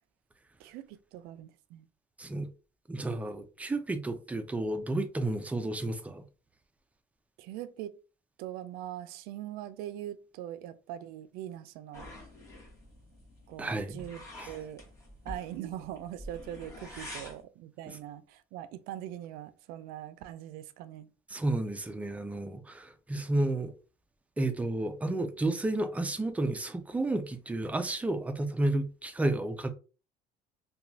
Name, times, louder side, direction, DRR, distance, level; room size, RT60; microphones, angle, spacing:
voice 1, 0.6-1.9 7.4-7.9 8.4-12.1 13.5-14.8 15.3-21.1, right 12 dB, 80° right, 0.4 m, -42 dB
voice 2, 2.2-2.5 2.9-6.2 13.6-14.0 14.4-14.5 17.0-17.1 17.9-18.0 21.3-23.7 24.4-29.7, right 2 dB, 10° right, 0.4 m, -31 dB
sound 1, 11.9-17.4, left 1 dB, 20° left, 1.2 m, -47 dB
2.9 x 2.2 x 2.6 m
cardioid pair, 135°, 15 cm